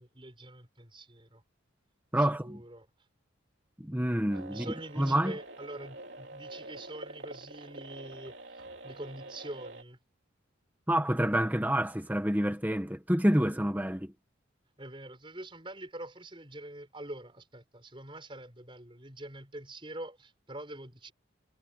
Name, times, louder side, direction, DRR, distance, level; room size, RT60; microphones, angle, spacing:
voice 1, 0.0-1.4 2.1-3.1 4.5-10.0 14.8-21.1, right 1 dB, 25° right, 6.0 m, -45 dB
voice 2, 2.1-2.6 3.8-4.7 5.0-5.3 10.9-14.1, right 1 dB, 10° right, 1.3 m, -28 dB
sound 1, 4.3-9.8, right 2 dB, 60° right, 3.4 m, -46 dB
head